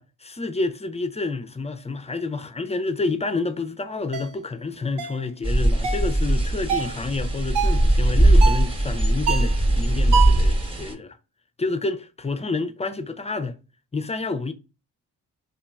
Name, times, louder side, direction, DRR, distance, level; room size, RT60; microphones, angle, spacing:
voice 1, 0.0-11.2 11.6-13.6 13.9-14.5, left 3 dB, 15° left, 0.3 m, -29 dB
sound 1, 4.1-4.3 5.0-5.2 5.8-6.1 6.7-7.0 7.5-7.9 8.4-8.7 9.3-9.6 10.1-10.5, right 6 dB, 70° right, 0.6 m, -26 dB
sound 2, 5.4-10.9, right 1 dB, 15° right, 0.9 m, -20 dB
3.0 x 2.3 x 2.2 m
hypercardioid pair, 40°, 42 cm